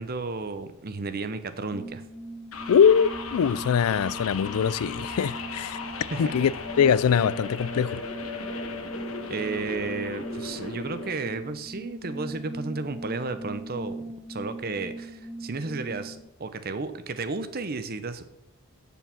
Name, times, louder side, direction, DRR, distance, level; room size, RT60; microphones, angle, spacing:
voice 1, 0.0-2.0 5.8-6.3 9.3-14.0 14.3-18.2, right 3 dB, 45° right, 0.8 m, -33 dB
sound 1, 1.7-16.2, right 1 dB, 5° left, 0.9 m, -40 dB
sound 2, 2.5-11.1, left 4 dB, 70° left, 1.2 m, -37 dB
voice 2, 2.7-5.8 6.2-6.5 6.8-8.0, left 7 dB, 90° left, 0.4 m, -22 dB
8.2 x 7.1 x 5.9 m
head